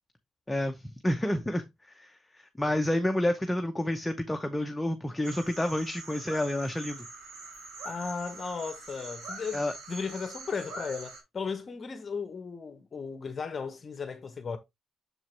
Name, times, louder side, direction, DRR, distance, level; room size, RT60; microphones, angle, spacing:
voice 1, 0.5-1.6 1.9-7.0 9.5-9.7, left 1 dB, 10° left, 0.8 m, -29 dB
sound 1, 5.2-11.2, right 3 dB, 80° right, 3.0 m, -44 dB
voice 2, 7.8-9.6 9.9-14.6, left 5 dB, 40° left, 0.8 m, -36 dB
6.8 x 4.6 x 3.3 m
cardioid pair, 90°, 0 cm